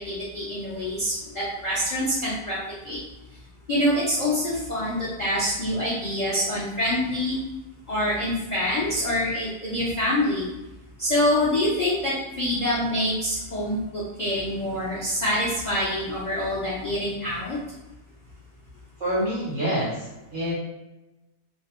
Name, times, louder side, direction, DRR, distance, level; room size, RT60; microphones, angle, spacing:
voice 1, 0.0-2.6 2.8-3.0 3.7-7.4 7.9-10.5 11.0-17.6, left 1 dB, 75° left, -8 dB, 0.3 m, -26 dB
voice 2, 19.0-20.5, equal, 55° right, -7 dB, 0.6 m, -27 dB
2.7 x 2.0 x 2.9 m, 1.0 s
omnidirectional pair, 1.6 m